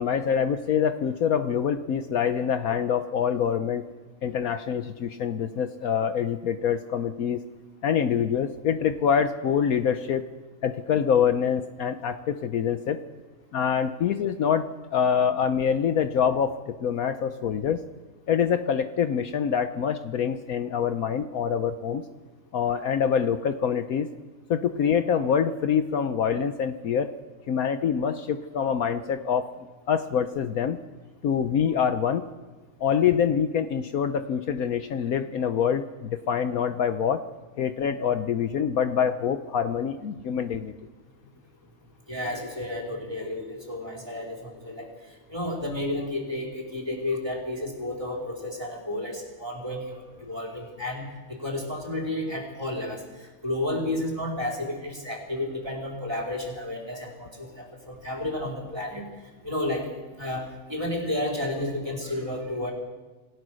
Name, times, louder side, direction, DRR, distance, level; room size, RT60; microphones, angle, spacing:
voice 1, 0.0-3.8 4.2-7.4 7.8-10.3 10.6-13.0 13.5-14.6 14.9-17.8 18.3-22.0 22.5-24.1 24.5-27.1 27.5-29.5 29.9-30.8 31.2-32.3 32.8-37.2 37.6-40.7, left 7 dB, 65° left, 9 dB, 1.2 m, -25 dB
voice 2, 42.1-44.9 45.3-53.0 53.4-59.0 59.4-59.9 60.2-62.7, left 1 dB, 15° right, -1 dB, 4.4 m, -31 dB
27.5 x 16.0 x 6.4 m, 1.2 s
omnidirectional pair, 1.7 m